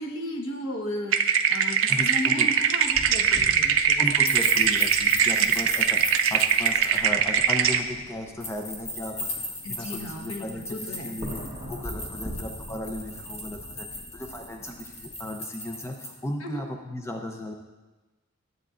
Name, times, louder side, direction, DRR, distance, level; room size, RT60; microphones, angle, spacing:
voice 1, 0.0-4.3 5.4-5.5 9.6-11.2 16.4-16.6, left 1 dB, 80° left, 1 dB, 1.2 m, -35 dB
sound 1, 1.1-7.8, right 7 dB, 70° right, 0.5 m, -22 dB
voice 2, 1.9-2.5 4.0-11.4 11.7-17.5, left 1 dB, 15° left, 2 dB, 0.6 m, -36 dB
sound 2, 2.8-15.1, equal, 25° right, 1.2 m, -43 dB
sound 3, 4.2-7.0 8.4-16.1, left 1 dB, 30° left, 1.2 m, -37 dB
13.0 x 7.9 x 2.5 m, 1.2 s
head